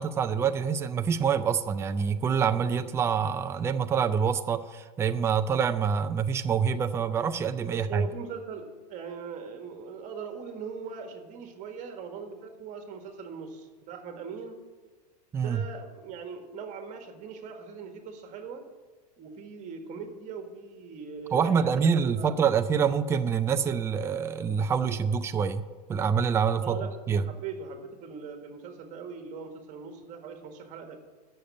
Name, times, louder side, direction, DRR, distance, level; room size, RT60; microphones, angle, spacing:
voice 1, 0.0-8.1 15.3-15.6 21.3-25.6 25.9-27.3, right 6 dB, 15° right, 9 dB, 0.4 m, -26 dB
voice 2, 7.7-8.6 8.9-14.6 15.4-18.6 19.2-22.4 26.6-26.9 27.3-31.0, right 5 dB, 35° right, 5 dB, 1.7 m, -40 dB
8.5 x 6.6 x 8.4 m, 1.3 s
supercardioid pair, 130°, 21 cm